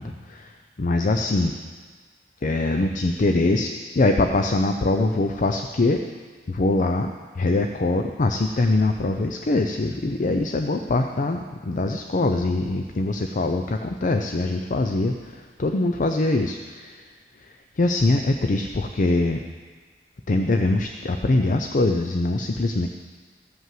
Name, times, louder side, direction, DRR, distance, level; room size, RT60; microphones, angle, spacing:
voice 1, 0.0-1.5 2.4-6.0 6.5-7.1 7.3-17.1 17.3-19.4 20.3-22.9, left 2 dB, 50° left, 5 dB, 0.5 m, -23 dB
14.5 x 5.6 x 7.6 m, 1.5 s
head